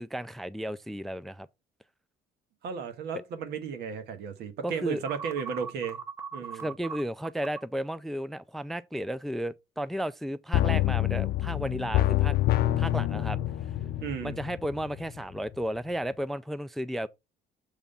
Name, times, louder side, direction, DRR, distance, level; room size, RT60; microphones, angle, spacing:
voice 1, 0.0-1.5 3.1-3.2 4.6-5.0 6.5-12.3 12.8-13.4 14.2-17.1, right 1 dB, ahead, 0.3 m, -33 dB
voice 2, 2.6-6.0 6.3-6.7 14.0-14.4, right 6 dB, 75° right, 1.4 m, -34 dB
sound 1, 5.1-7.6, right 7 dB, 15° right, 0.9 m, -38 dB
sound 2, 10.5-15.2 15.5-15.6, left 14 dB, 65° left, 0.5 m, -27 dB
7.2 x 3.3 x 5.4 m
cardioid pair, 110°, 17 cm